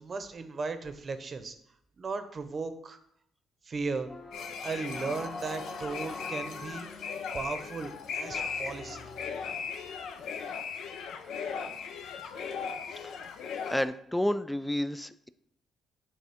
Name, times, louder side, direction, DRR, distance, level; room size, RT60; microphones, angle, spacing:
voice 1, 0.0-1.5 2.0-3.0 3.6-4.1 4.6-6.9 7.3-9.1, right 4 dB, 40° right, 9 dB, 0.7 m, -36 dB
sound 1, 4.1-10.1, left 3 dB, 35° left, 1.2 m, -45 dB
sound 2, 4.3-13.8, left 6 dB, 80° left, 0.6 m, -38 dB
voice 2, 13.7-15.3, left 1 dB, 5° left, 13 dB, 0.3 m, -30 dB
9.2 x 3.6 x 3.5 m, 0.74 s
cardioid pair, 90°, 0 cm